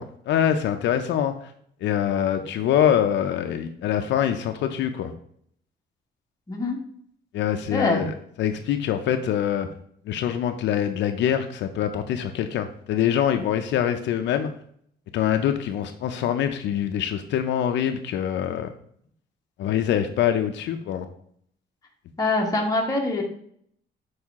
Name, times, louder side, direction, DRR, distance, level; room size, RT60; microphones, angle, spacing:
voice 1, 0.0-1.5 1.8-5.1 7.3-9.7 10.1-14.5 15.1-18.7 19.6-21.1, left 9 dB, 75° left, 7 dB, 0.6 m, -24 dB
voice 2, 7.7-8.0 22.2-23.2, left 2 dB, 20° left, 0 dB, 1.4 m, -24 dB
6.3 x 4.8 x 3.6 m, 0.65 s
cardioid pair, 145°, 19 cm